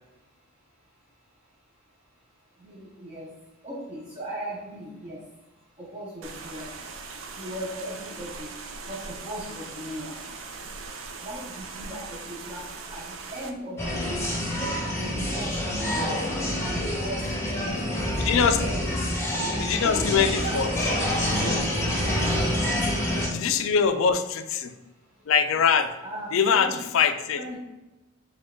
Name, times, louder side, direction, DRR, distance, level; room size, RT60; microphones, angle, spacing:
voice 1, 2.6-3.3 3.6-5.2 5.8-6.9 7.4-8.5 8.9-10.1 11.2-12.6 12.9-16.1 16.6-18.9 19.3-21.6 22.2-22.4 26.0-26.8 27.4-27.6, right 1 dB, 30° right, -6 dB, 0.7 m, -38 dB
sound 1, 6.2-13.5, right 4 dB, 65° right, 0.5 m, -40 dB
sound 2, 13.8-23.3, left 1 dB, 15° left, 0.8 m, -27 dB
voice 2, 18.2-18.6 19.6-20.7 23.3-24.7 25.3-25.9 26.3-27.4, left 6 dB, 70° left, 9 dB, 0.4 m, -23 dB
5.0 x 2.3 x 3.6 m, 1.0 s
head